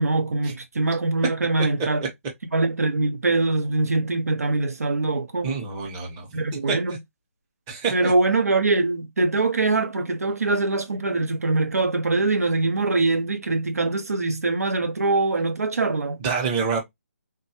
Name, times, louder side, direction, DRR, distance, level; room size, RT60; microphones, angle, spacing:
voice 1, 0.0-2.1 2.5-5.5 6.3-7.0 7.9-16.2, right 3 dB, 85° right, 0.8 m, -23 dB
voice 2, 5.4-6.5 7.7-8.1 16.2-16.8, right 5 dB, 20° right, 0.8 m, -27 dB
3.5 x 2.2 x 2.8 m
hypercardioid pair, 160°, 8 cm